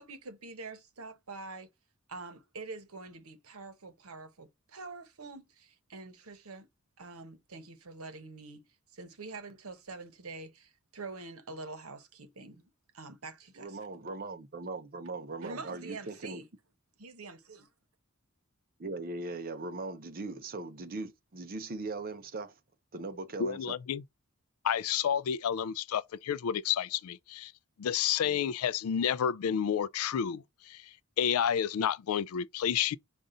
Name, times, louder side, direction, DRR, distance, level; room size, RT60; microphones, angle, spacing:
voice 1, 0.0-1.7 2.1-6.7 7.0-8.6 8.9-13.9 15.4-16.5 17.0-17.6, right 3 dB, 80° right, 1.0 m, -45 dB
voice 2, 13.6-16.4 18.8-22.5 22.9-23.8, right 3 dB, 45° right, 0.7 m, -39 dB
voice 3, 23.4-24.0 24.6-27.5 27.8-33.0, left 8 dB, 80° left, 0.4 m, -30 dB
5.3 x 2.4 x 3.8 m
head